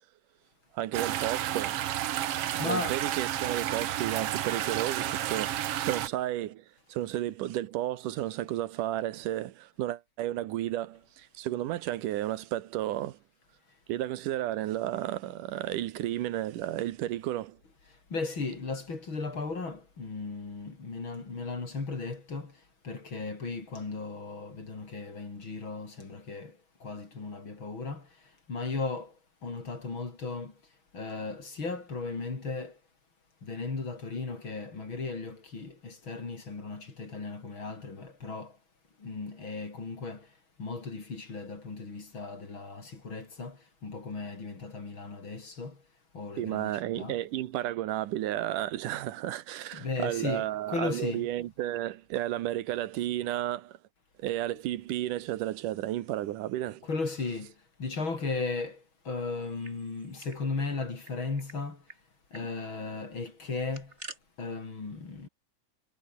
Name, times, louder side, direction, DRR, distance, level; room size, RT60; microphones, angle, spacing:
voice 1, 0.7-1.8 2.6-13.2 13.9-17.6 46.4-53.8 54.2-56.9, right 14 dB, 85° right, 2.7 m, -32 dB
sound 1, 0.9-6.1, right 12 dB, 60° right, 1.8 m, -31 dB
voice 2, 2.6-3.0 18.1-22.6 22.8-28.1 28.5-29.1 29.4-30.5 30.9-32.8 33.4-38.6 39.0-40.3 40.6-45.8 46.1-47.2 49.7-51.3 56.8-57.5 57.8-61.8 62.3-63.9 64.4-65.3, left 3 dB, 40° left, 4.8 m, -36 dB
sound 2, 59.3-60.4 60.7-60.8 61.0-61.6 61.9-62.0 62.3-62.5 63.5-64.2, right 3 dB, 20° right, 3.4 m, -48 dB
omnidirectional pair, 3.6 m